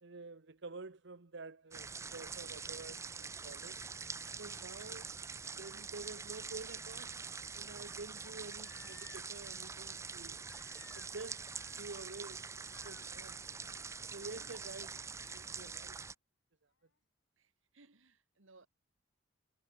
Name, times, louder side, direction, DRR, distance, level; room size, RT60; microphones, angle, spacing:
voice 1, 0.0-3.8 4.4-5.1 5.6-7.2 7.5-10.4 10.9-11.5 11.8-13.4 14.1-15.0 15.3-16.0, right 3 dB, 65° right, 1.1 m, -49 dB
sound 1, 1.7-16.1, right 5 dB, 15° right, 0.4 m, -45 dB
Crying sobbing, 8.2-9.5 10.4-11.3 11.6-12.1 12.7-13.0 14.6-14.7, left 8 dB, 90° left, 1.1 m, -60 dB
voice 2, 14.0-14.6 17.4-18.7, right 3 dB, 85° right, 2.1 m, -64 dB
head